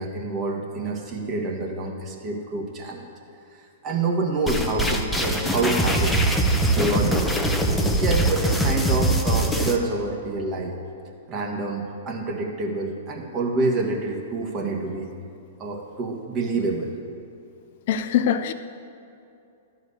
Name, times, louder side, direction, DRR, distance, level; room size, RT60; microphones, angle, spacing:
voice 1, 0.0-3.0 3.8-6.2 6.5-7.3 8.0-10.7 11.3-15.1 15.6-16.9, right 2 dB, 30° right, 0 dB, 1.7 m, -27 dB
sound 1, 4.5-9.8, right 1 dB, 5° left, 0.9 m, -22 dB
voice 2, 17.9-18.5, left 9 dB, 55° left, 11 dB, 0.6 m, -22 dB
11.5 x 4.8 x 8.2 m, 2.7 s
hypercardioid pair, 115°, 0 cm